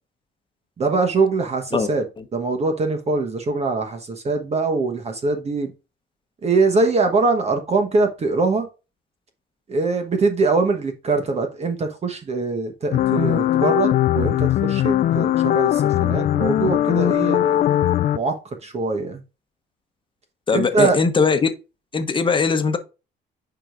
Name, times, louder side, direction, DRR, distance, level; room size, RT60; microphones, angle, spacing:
voice 1, 0.8-2.0 2.3-5.7 6.4-8.7 9.7-17.6 18.1-19.2 20.5-21.0, right 3 dB, 35° right, 1.2 m, -22 dB
sound 1, 12.9-18.2, left 12 dB, 50° left, 0.4 m, -19 dB
voice 2, 20.5-21.5 21.9-22.8, left 5 dB, 25° left, 1.1 m, -19 dB
9.8 x 5.0 x 2.5 m
cardioid pair, 125°, 19 cm